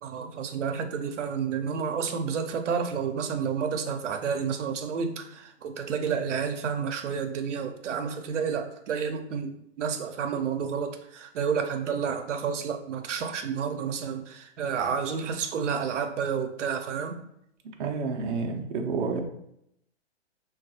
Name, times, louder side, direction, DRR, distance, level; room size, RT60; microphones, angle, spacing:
voice 1, 0.0-17.2, right 6 dB, 85° right, 6 dB, 0.6 m, -30 dB
voice 2, 17.6-19.2, right 4 dB, 45° right, 1 dB, 0.5 m, -30 dB
3.8 x 2.3 x 2.7 m, 0.77 s
hypercardioid pair, 150°, 35 cm